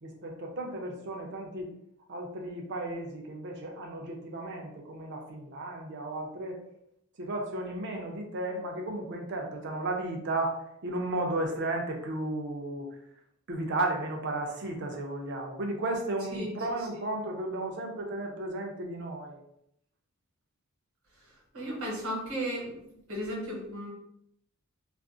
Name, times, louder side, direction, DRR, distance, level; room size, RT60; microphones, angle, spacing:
voice 1, 0.0-1.7 2.1-6.6 7.2-12.9 13.5-19.4, right 2 dB, 55° right, 1 dB, 0.6 m, -34 dB
voice 2, 21.5-22.8 23.1-23.9, equal, 75° right, -2 dB, 1.0 m, -34 dB
2.4 x 2.0 x 3.6 m, 0.76 s
head